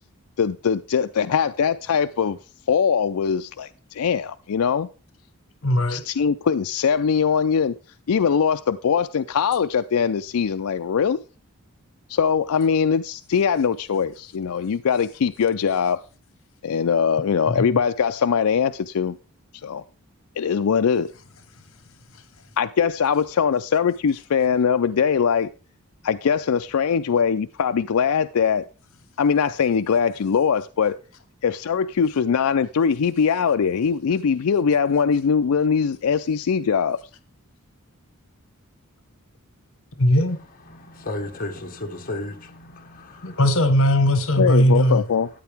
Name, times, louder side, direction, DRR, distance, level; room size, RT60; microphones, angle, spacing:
voice 1, 0.4-2.4 2.7-4.9 5.9-7.7 8.1-11.2 12.1-16.0 16.6-19.2 19.6-19.8 20.4-21.1 22.6-25.5 26.0-28.7 29.2-31.0 31.4-37.0 44.4-45.3, left 6 dB, 80° left, 0.4 m, -21 dB
voice 2, 5.6-6.0 40.0-40.4 43.2-45.0, equal, 65° left, 1.4 m, -18 dB
voice 3, 40.7-43.4, left 2 dB, 40° left, 1.5 m, -34 dB
13.5 x 9.3 x 3.5 m
head